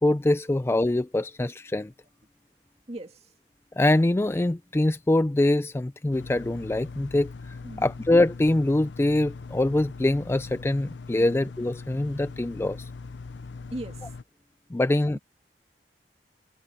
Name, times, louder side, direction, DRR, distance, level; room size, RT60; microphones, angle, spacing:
voice 1, 0.0-1.9 3.8-12.9 14.7-15.2, left 1 dB, 15° left, 0.3 m, -24 dB
voice 2, 2.9-3.3 7.6-7.9 13.7-14.2 15.1-15.2, right 1 dB, 35° right, 2.2 m, -38 dB
sound 1, 6.1-14.2, left 4 dB, 90° left, 0.6 m, -41 dB
head